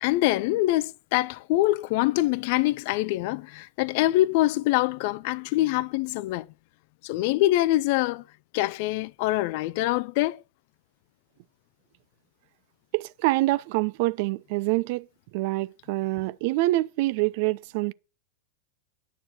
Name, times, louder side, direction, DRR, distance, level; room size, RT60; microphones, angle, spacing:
voice 1, 0.0-6.5 7.0-8.2 8.5-10.4, left 17 dB, 45° left, 0.5 m, -24 dB
voice 2, 12.9-15.0 15.3-17.9, right 19 dB, 50° right, 0.4 m, -26 dB
10.0 x 6.7 x 6.0 m
figure-of-eight pair, 90°, 0 cm